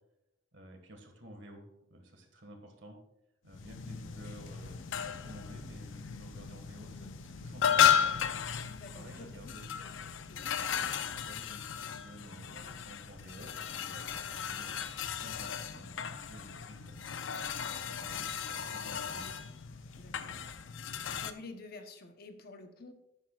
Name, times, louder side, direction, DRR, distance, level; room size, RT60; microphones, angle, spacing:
voice 1, 0.5-1.6 1.9-3.0 3.4-8.3 8.9-9.7 10.9-17.0 17.5-19.4 19.9-20.0, right 1 dB, 70° right, 4 dB, 1.8 m, -52 dB
sound 1, 3.5-21.3, left 8 dB, 80° left, 0.6 m, -34 dB
voice 2, 8.7-9.5 10.3-10.5 20.0-20.4 21.1-22.9, left 3 dB, 55° left, 6 dB, 1.0 m, -49 dB
12.0 x 10.0 x 2.4 m, 0.86 s
head